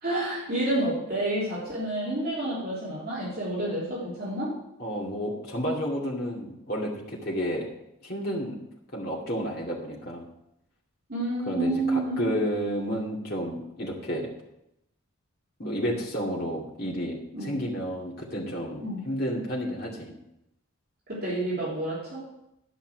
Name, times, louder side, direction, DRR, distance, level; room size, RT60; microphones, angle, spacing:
voice 1, 0.0-4.5 11.1-12.3 17.3-17.5 18.8-19.0 21.1-22.2, right 1 dB, 45° right, -9 dB, 3.6 m, -29 dB
voice 2, 4.8-7.7 8.0-8.6 8.9-10.2 11.5-14.3 15.6-20.1, equal, 45° left, -3 dB, 2.4 m, -31 dB
11.5 x 5.8 x 6.3 m, 0.84 s
head